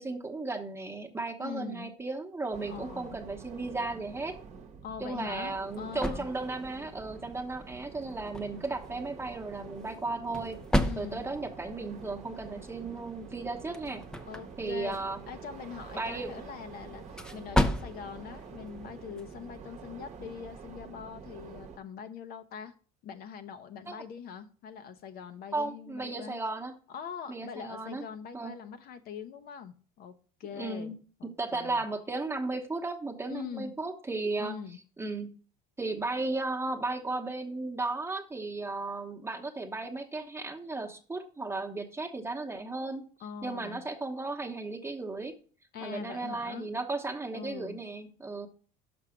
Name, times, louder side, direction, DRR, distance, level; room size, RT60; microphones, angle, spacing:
voice 1, 0.0-4.4 5.0-10.6 11.0-14.0 14.6-15.2 16.0-16.3 23.9-24.0 25.5-26.7 27.3-28.0 28.3-28.5 30.5-31.0 31.4-34.6 35.0-35.3 35.8-43.1 43.4-45.3 45.8-48.5, right 3 dB, 10° right, 4 dB, 1.0 m, -35 dB
voice 2, 1.4-1.9 2.7-3.2 4.8-6.3 10.8-11.2 14.3-22.7 23.0-26.4 26.9-30.1 30.4-31.8 33.3-33.7 34.4-34.8 43.2-43.8 45.7-46.7 47.3-47.8, left 7 dB, 50° left, 8 dB, 0.7 m, -43 dB
sound 1, 2.5-21.8, right 5 dB, 35° right, 1.0 m, -47 dB
sound 2, 5.1-19.6, equal, 5° left, 0.5 m, -36 dB
6.1 x 5.6 x 5.0 m, 0.40 s
supercardioid pair, 105°, 20 cm